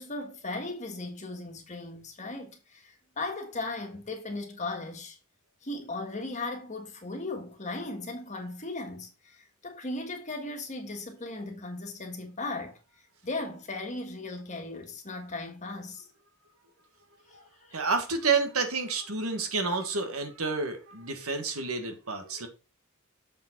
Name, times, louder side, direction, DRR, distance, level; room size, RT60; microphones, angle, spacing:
voice 1, 0.0-5.2 5.6-12.8 13.2-16.0 17.3-17.5, left 2 dB, 35° left, 1.7 m, -37 dB
voice 2, 17.7-22.5, right 4 dB, 70° right, 1.6 m, -29 dB
7.0 x 5.2 x 3.8 m
head